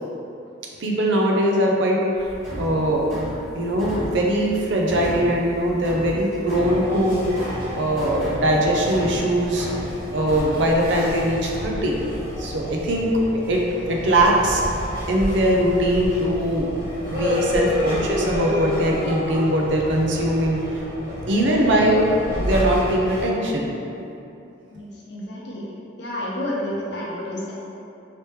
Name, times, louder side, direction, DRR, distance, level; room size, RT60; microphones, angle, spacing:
voice 1, 0.8-2.0 2.6-3.3 3.5-7.3 7.7-9.7 10.1-12.0 12.4-13.6 13.9-14.6 15.1-16.7 17.1-20.6 21.3-22.1 22.4-23.7, right 1 dB, 65° right, -1 dB, 0.5 m, -21 dB
sound 1, 2.1-10.5, equal, 15° right, 1.3 m, -34 dB
sound 2, 6.6-23.2, left 1 dB, 45° right, 1.3 m, -30 dB
voice 2, 24.7-25.6 26.0-27.5, left 1 dB, 60° left, -5 dB, 0.7 m, -30 dB
3.2 x 2.9 x 3.2 m, 2.7 s
head